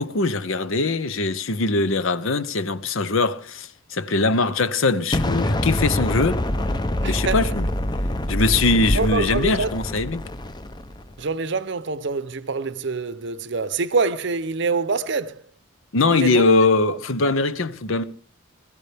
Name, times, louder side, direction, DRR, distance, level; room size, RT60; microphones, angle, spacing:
voice 1, 0.0-6.4 7.0-7.7 8.3-10.2 15.9-18.0, left 3 dB, 75° left, 0.8 m, -21 dB
Explosion, 5.1-11.1, left 1 dB, 20° left, 0.6 m, -25 dB
voice 2, 7.0-7.5 8.9-9.7 11.2-15.4 16.1-16.5 16.9-17.0, right 4 dB, 55° right, 0.7 m, -25 dB
20.5 x 14.5 x 3.4 m
head